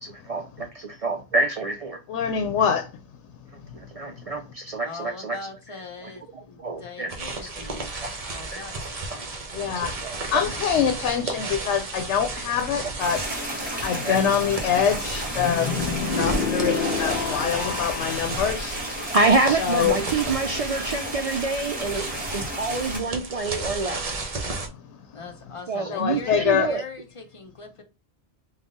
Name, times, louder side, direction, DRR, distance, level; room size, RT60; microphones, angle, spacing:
voice 1, 0.0-2.0 3.7-5.4 6.6-7.1 8.0-8.1 8.5-8.6 9.1-9.2 9.7-10.4 13.3-14.2 15.4-15.5 16.1-16.5 19.1-24.0 25.7-26.8, right 3 dB, 70° right, 0.3 m, -27 dB
voice 2, 2.1-2.9 3.6-3.8 4.1-4.3 9.5-10.0 10.3-13.3 13.8-15.8 16.1-18.8 19.5-20.0 24.7-25.0 25.9-26.7, left 8 dB, 85° left, 0.9 m, -25 dB
voice 3, 4.8-9.6 25.1-27.8, left 4 dB, 30° left, 0.8 m, -41 dB
sound 1, 7.1-24.7, right 3 dB, 40° right, 0.7 m, -33 dB
sound 2, 13.0-23.0, equal, 10° right, 1.4 m, -34 dB
sound 3, 15.4-18.4, left 5 dB, 60° left, 0.7 m, -28 dB
3.6 x 2.3 x 3.9 m
omnidirectional pair, 1.1 m